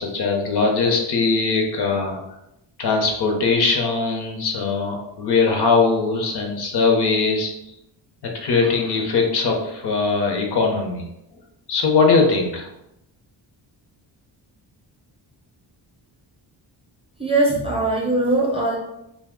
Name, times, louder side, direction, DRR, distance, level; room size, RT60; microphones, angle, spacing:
voice 1, 0.0-2.2 2.8-7.5 8.2-11.0 11.7-12.7, left 4 dB, 60° left, 1 dB, 0.7 m, -20 dB
voice 2, 17.2-18.8, right 2 dB, 15° right, -3 dB, 0.5 m, -20 dB
2.8 x 2.2 x 3.6 m, 0.85 s
wide cardioid pair, 135°, 43 cm